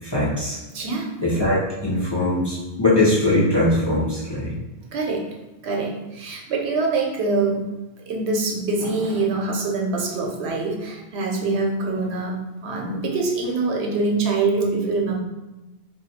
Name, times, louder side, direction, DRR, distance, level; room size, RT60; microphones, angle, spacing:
voice 1, 0.0-0.6 1.2-4.5, left 1 dB, 25° left, -8 dB, 0.7 m, -21 dB
voice 2, 0.7-1.1 4.9-5.3 5.6-7.6 8.1-12.4 12.6-15.2, right 3 dB, 75° right, -1 dB, 0.9 m, -24 dB
2.4 x 2.2 x 4.0 m, 1.0 s
omnidirectional pair, 1.1 m